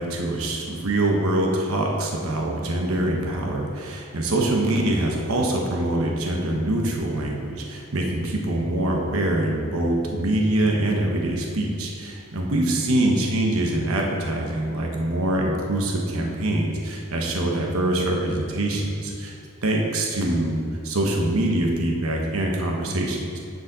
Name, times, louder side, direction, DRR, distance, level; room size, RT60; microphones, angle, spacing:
voice 1, 0.0-19.3 19.6-23.4, right 1 dB, 80° right, 0 dB, 1.0 m, -24 dB
9.6 x 5.3 x 4.0 m, 2.5 s
head